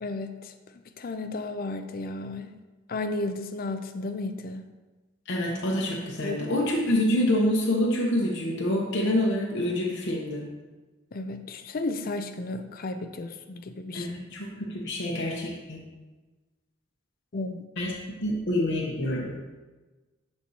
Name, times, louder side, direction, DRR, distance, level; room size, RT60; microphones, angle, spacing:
voice 1, 0.0-0.5 1.0-2.5 2.9-4.7 6.2-6.4 11.1-14.1 17.3-17.6, left 2 dB, 45° left, 8 dB, 0.5 m, -33 dB
voice 2, 5.3-10.5 13.9-15.8 17.8-19.4, left 1 dB, 65° left, -2 dB, 0.9 m, -27 dB
11.0 x 4.4 x 2.8 m, 1.2 s
head